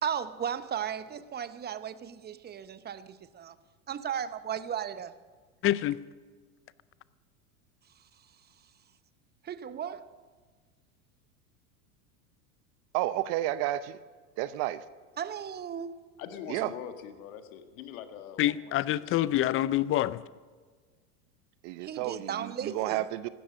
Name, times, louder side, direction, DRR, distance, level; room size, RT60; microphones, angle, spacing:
voice 1, 0.0-3.5 3.9-5.1 9.4-10.1 15.2-15.9 21.8-23.0, right 8 dB, 25° right, 13 dB, 0.9 m, -35 dB
voice 2, 5.6-6.0 18.4-20.2, left 13 dB, 30° left, 18 dB, 0.5 m, -26 dB
voice 3, 12.9-14.0 14.4-14.8 16.5-16.7 21.6-23.3, right 15 dB, 55° right, 15 dB, 0.8 m, -31 dB
voice 4, 16.2-18.7 19.2-19.4, left 9 dB, 70° left, 7 dB, 1.8 m, -43 dB
16.0 x 12.5 x 6.3 m, 1.5 s
hypercardioid pair, 100°, 43 cm